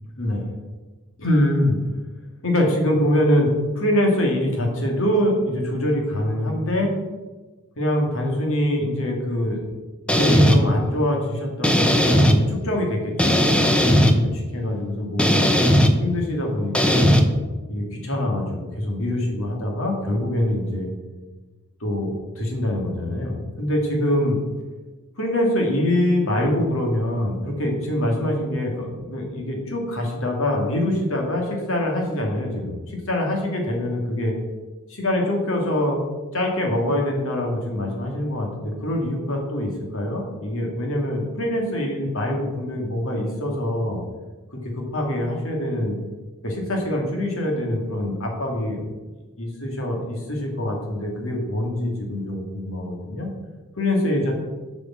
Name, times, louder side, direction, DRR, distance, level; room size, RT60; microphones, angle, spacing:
voice 1, 1.2-1.8 2.4-3.5 3.8-6.9 7.8-9.6 10.1-15.5 16.0-17.1 17.7-20.9 21.8-24.4 25.2-34.3 34.9-36.0 36.3-44.0 44.5-46.0 46.4-48.8 49.4-53.3 53.8-54.4, left 1 dB, 65° left, 1 dB, 2.3 m, -24 dB
sound 1, 10.1-10.6 11.6-12.4 13.2-14.1 15.2-15.9 16.7-17.2, equal, 5° left, 0.7 m, -17 dB
8.3 x 5.2 x 7.4 m, 1.2 s
head